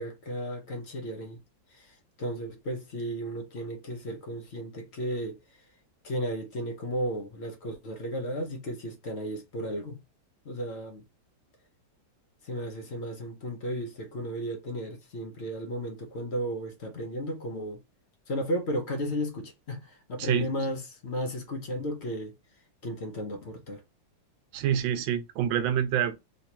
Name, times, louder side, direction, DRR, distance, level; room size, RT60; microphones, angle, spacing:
voice 1, 0.0-1.4 1.7-5.4 6.0-10.0 10.4-11.0 12.4-17.8 18.3-22.3 22.8-23.8, equal, 50° left, 0.8 m, -34 dB
voice 2, 20.2-20.5 24.5-26.1, right 9 dB, 85° right, 1.4 m, -27 dB
3.2 x 3.0 x 2.8 m
omnidirectional pair, 2.1 m